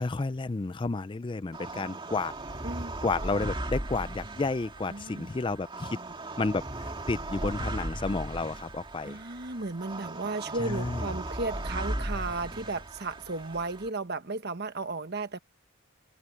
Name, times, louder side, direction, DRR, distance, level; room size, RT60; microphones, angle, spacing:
voice 1, 0.0-2.3 3.0-6.0 6.4-9.2 10.6-11.1, left 3 dB, 25° left, 0.4 m, -31 dB
sound 1, 1.5-13.9, right 1 dB, 25° right, 2.5 m, -37 dB
voice 2, 2.6-3.1 4.9-5.3 9.0-15.4, right 3 dB, 50° right, 1.3 m, -34 dB
head